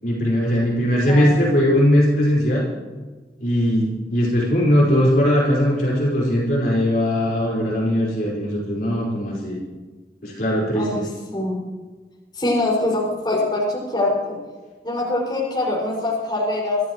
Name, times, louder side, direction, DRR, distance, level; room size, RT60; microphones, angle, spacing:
voice 1, 0.0-2.7 3.4-9.6 10.2-11.1, equal, 55° left, -5 dB, 4.8 m, -19 dB
voice 2, 1.1-1.4 10.7-11.0 11.3-11.6 12.3-14.4 14.8-16.8, left 2 dB, 25° left, -5 dB, 5.7 m, -23 dB
26.5 x 13.0 x 3.1 m, 1.3 s
head